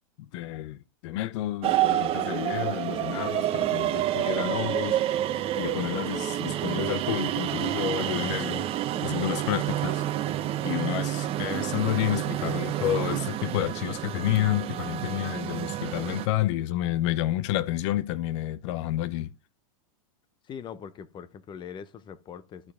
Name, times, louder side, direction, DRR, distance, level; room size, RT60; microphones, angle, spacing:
voice 1, 0.3-5.0 5.6-8.7 9.0-10.0 10.6-19.3, left 14 dB, 55° left, 0.7 m, -30 dB
sound 1, 1.6-16.3, right 12 dB, 35° right, 0.9 m, -29 dB
voice 2, 20.4-22.7, left 7 dB, 25° left, 0.8 m, -42 dB
12.0 x 4.7 x 3.6 m
hypercardioid pair, 120°, 18 cm